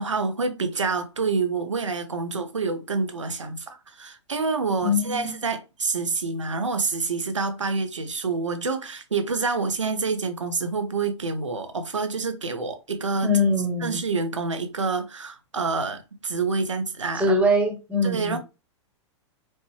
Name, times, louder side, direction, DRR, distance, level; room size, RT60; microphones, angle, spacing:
voice 1, 0.0-13.3 13.8-17.4 18.0-18.4, right 4 dB, 85° right, 0.7 m, -27 dB
voice 2, 4.8-5.4 13.2-14.0 17.1-18.4, left 1 dB, 10° right, 1.0 m, -23 dB
4.2 x 2.2 x 3.2 m
figure-of-eight pair, 105°, 15 cm